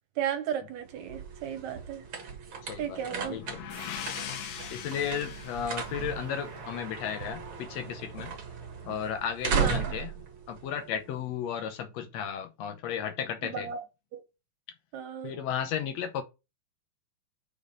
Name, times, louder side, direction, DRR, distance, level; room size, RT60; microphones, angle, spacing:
voice 1, 0.2-2.0 2.8-3.4 9.5-9.9 13.4-13.8 14.1-14.2 14.9-15.3, right 9 dB, 70° right, 2.2 m, -34 dB
sound 1, 0.7-11.5, right 6 dB, 50° right, 1.8 m, -36 dB
voice 2, 2.7-3.6 4.7-8.3 8.8-10.1 10.5-13.7 15.2-16.2, left 8 dB, 70° left, 1.7 m, -34 dB
sound 2, 3.2-7.0, left 10 dB, 90° left, 2.6 m, -41 dB
sound 3, 3.7-9.6, right 2 dB, 20° right, 2.0 m, -55 dB
5.2 x 5.2 x 5.3 m
omnidirectional pair, 3.7 m